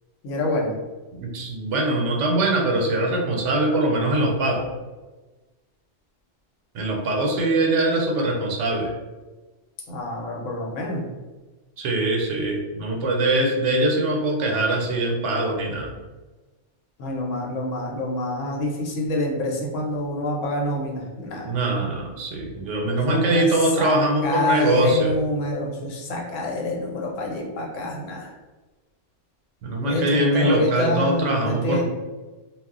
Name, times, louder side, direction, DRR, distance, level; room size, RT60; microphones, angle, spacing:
voice 1, 0.2-0.8 9.9-11.0 17.0-21.5 23.1-23.5 23.8-28.3 29.8-31.8, left 1 dB, 90° left, -1 dB, 1.0 m, -27 dB
voice 2, 1.2-4.7 6.7-8.9 11.8-15.9 21.4-25.2 29.6-31.8, right 1 dB, 85° right, 1 dB, 0.9 m, -22 dB
2.3 x 2.0 x 3.6 m, 1.2 s
omnidirectional pair, 1.2 m